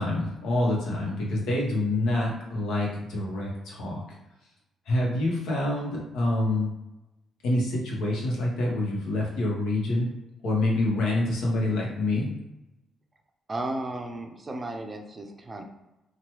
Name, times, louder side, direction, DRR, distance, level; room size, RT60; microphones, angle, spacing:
voice 1, 0.0-4.0 4.9-6.7 7.4-10.1 10.4-12.3, left 2 dB, 85° left, -3 dB, 0.9 m, -26 dB
voice 2, 13.5-15.6, right 2 dB, 25° right, 4 dB, 0.5 m, -34 dB
2.9 x 2.2 x 3.0 m, 0.97 s
cardioid pair, 90°, 0 cm